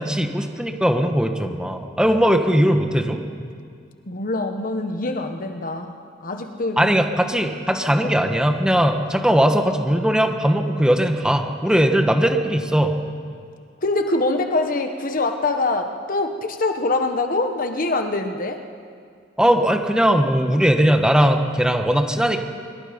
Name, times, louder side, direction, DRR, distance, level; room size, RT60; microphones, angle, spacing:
voice 1, 0.0-3.2 6.8-12.9 19.4-22.5, equal, 5° right, 5 dB, 1.4 m, -19 dB
voice 2, 4.1-6.9 13.8-18.6, left 2 dB, 50° left, 6 dB, 1.4 m, -24 dB
25.0 x 23.5 x 5.3 m, 2.2 s
head